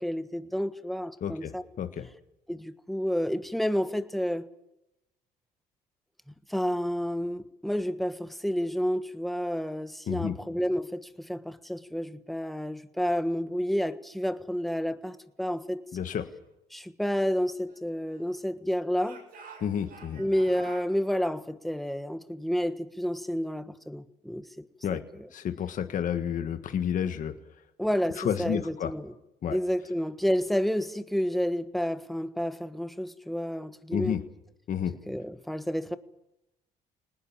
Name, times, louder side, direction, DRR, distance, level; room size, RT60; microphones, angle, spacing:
voice 1, 0.0-1.6 2.5-4.5 6.5-15.8 16.7-19.2 20.2-24.6 24.9-25.0 27.8-29.1 29.5-34.2 35.1-36.0, equal, ahead, 1.3 m, -30 dB
voice 2, 1.2-2.1 10.1-10.3 15.9-16.3 19.6-20.2 24.8-25.0 25.3-27.3 28.2-28.9 29.4-29.6 33.9-34.2 34.7-35.0, left 8 dB, 50° left, 1.6 m, -30 dB
Speech / Shout, 17.0-18.6 19.0-20.9, right 5 dB, 55° right, 7.3 m, -50 dB
24.5 x 19.5 x 7.3 m
cardioid pair, 110°, 17 cm